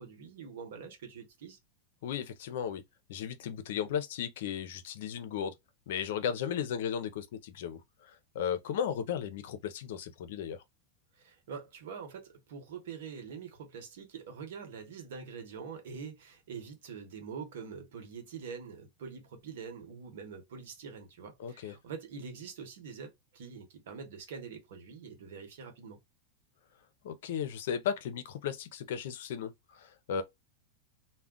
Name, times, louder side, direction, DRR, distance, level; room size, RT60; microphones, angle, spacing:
voice 1, 0.0-1.6 11.1-26.0, right 6 dB, 75° right, 1.0 m, -45 dB
voice 2, 2.0-2.8 3.1-5.5 5.9-10.6 21.4-21.7 27.0-30.2, left 8 dB, 75° left, 0.5 m, -35 dB
2.3 x 2.1 x 3.6 m
supercardioid pair, 130°, 0 cm